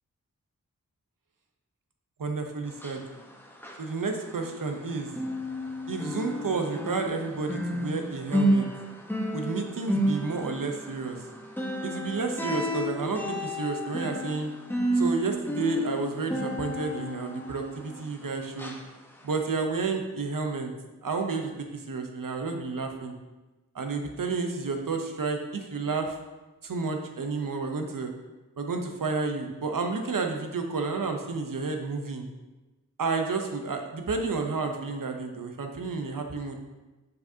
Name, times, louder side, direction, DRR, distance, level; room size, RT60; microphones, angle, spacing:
voice 1, 2.2-3.0 3.8-5.1 5.9-8.7 9.3-11.2 11.8-14.5 14.9-18.8 19.2-20.7 21.0-23.1 23.7-26.2 26.6-28.1 28.6-32.3 33.0-36.6, right 4 dB, 70° right, 4 dB, 0.8 m, -31 dB
sound 1, 2.7-4.8 5.1-18.2 18.6-18.8 19.3-19.4, equal, 5° left, 1.0 m, -31 dB
6.7 x 5.3 x 2.8 m, 1.1 s
wide cardioid pair, 60°, 34 cm